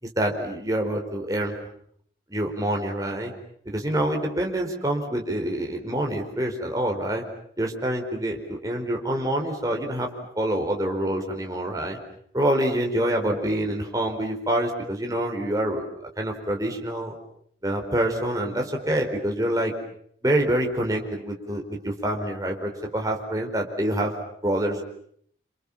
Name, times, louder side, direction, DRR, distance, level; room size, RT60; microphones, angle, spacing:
voice 1, 0.0-1.6 2.3-3.3 3.6-7.2 7.6-10.1 10.4-12.0 12.3-15.8 16.2-17.2 17.6-19.7 20.2-24.1 24.4-24.8, right 1 dB, 20° right, 2 dB, 4.6 m, -26 dB
28.5 x 28.0 x 7.4 m, 0.66 s
head